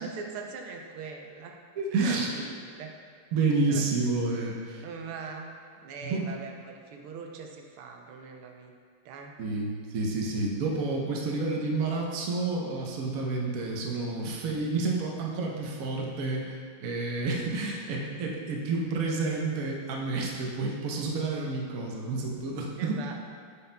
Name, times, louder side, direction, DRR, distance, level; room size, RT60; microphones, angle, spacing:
voice 1, 0.0-1.6 2.0-2.9 3.7-3.8 4.8-8.7 9.0-9.3 13.5-13.6 14.3-14.4 22.8-23.2, right 5 dB, 80° right, 3 dB, 1.5 m, -41 dB
voice 2, 1.8-2.3 3.3-4.8 6.0-6.3 9.4-23.0, right 3 dB, 65° right, -1 dB, 0.8 m, -30 dB
7.9 x 5.6 x 2.2 m, 2.2 s
omnidirectional pair, 2.4 m